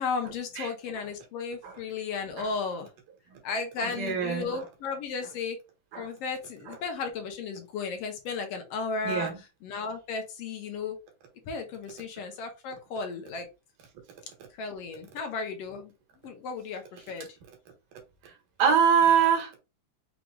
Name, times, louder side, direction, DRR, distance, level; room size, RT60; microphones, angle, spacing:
voice 1, 0.0-2.9 3.4-5.6 6.0-11.0 11.5-13.5 14.6-15.9 16.2-17.3, left 4 dB, 70° left, 1.6 m, -34 dB
voice 2, 4.0-4.6 5.9-6.0 6.7-6.8 9.0-9.3 18.6-19.6, right 7 dB, 85° right, 3.0 m, -23 dB
6.0 x 2.2 x 3.8 m
omnidirectional pair, 3.5 m